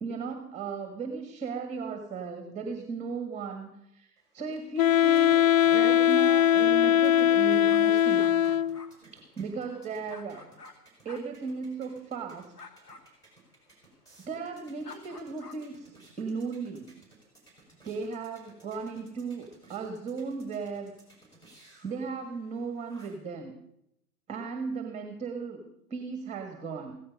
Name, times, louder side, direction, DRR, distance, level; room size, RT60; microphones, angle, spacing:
voice 1, 0.0-8.4 9.1-10.4 11.0-12.5 14.2-16.9 17.8-20.9 21.8-23.5 24.3-27.0, right 5 dB, 15° right, 6 dB, 1.6 m, -36 dB
sound 1, 4.2-23.3, right 2 dB, 10° left, 5.5 m, -59 dB
Wind instrument woodwind instrument, 4.8-8.9, left 11 dB, 60° left, 0.5 m, -21 dB
sound 2, 7.6-10.7 11.1-11.2 12.5-13.0 14.8-15.6, left 4 dB, 75° left, 2.3 m, -49 dB
16.0 x 15.0 x 5.4 m, 0.80 s
figure-of-eight pair, 120°, 47 cm